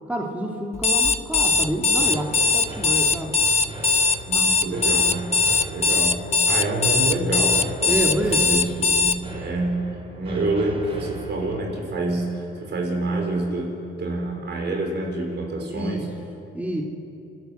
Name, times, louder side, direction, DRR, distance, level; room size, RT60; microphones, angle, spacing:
voice 1, 0.1-3.4 7.9-8.5 15.7-16.1 16.5-16.8, right 1 dB, 5° right, 0 dB, 2.4 m, -28 dB
Alarm, 0.7-9.2, left 4 dB, 35° left, 0.9 m, -20 dB
sound 1, 1.5-13.4, right 1 dB, 30° right, 3.9 m, -39 dB
voice 2, 4.2-6.2 6.5-9.8 10.2-13.7 14.0-16.0, right 2 dB, 60° right, 1 dB, 5.0 m, -27 dB
30.0 x 12.0 x 7.8 m, 2.8 s
cardioid pair, 90°, 20 cm